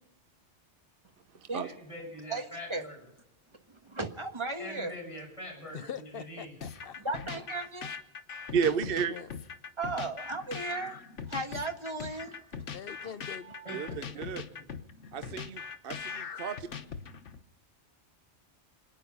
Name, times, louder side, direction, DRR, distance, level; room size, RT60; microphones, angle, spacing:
voice 1, 1.6-3.0 4.6-6.5 13.6-14.4, equal, 25° left, -1 dB, 6.5 m, -44 dB
voice 2, 2.3-2.9 3.7-4.9 7.0-7.9 9.8-11.0 11.3-12.6 13.0-13.1 13.4-13.8, right 2 dB, 25° right, 5 dB, 1.5 m, -36 dB
voice 3, 5.7-7.2 8.9-9.3 12.7-13.6, left 7 dB, 55° left, 12 dB, 0.9 m, -43 dB
sound 1, 6.6-17.4, left 6 dB, 90° left, 1.4 m, -41 dB
voice 4, 8.5-9.2 13.7-13.9 14.2-14.4 15.1-16.7, right 6 dB, 55° right, 11 dB, 0.9 m, -31 dB
26.5 x 9.6 x 5.5 m, 0.93 s
omnidirectional pair, 1.2 m